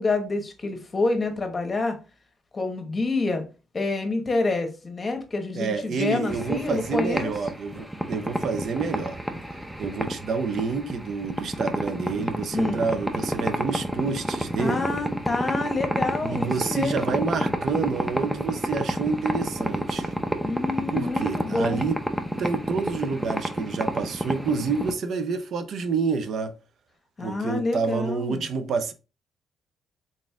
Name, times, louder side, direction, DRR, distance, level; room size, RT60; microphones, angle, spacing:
voice 1, 0.0-2.0 2.5-3.4 3.7-7.3 12.5-12.9 14.6-17.3 20.4-21.9 27.2-28.4, left 3 dB, 30° left, 1.1 m, -27 dB
voice 2, 5.5-9.2 9.8-14.9 16.2-20.1 20.9-22.0 22.4-26.5 27.2-28.9, right 5 dB, 65° right, 0.5 m, -28 dB
sound 1, 6.3-24.9, equal, 5° right, 0.6 m, -30 dB
4.0 x 3.7 x 2.4 m
cardioid pair, 90°, 0 cm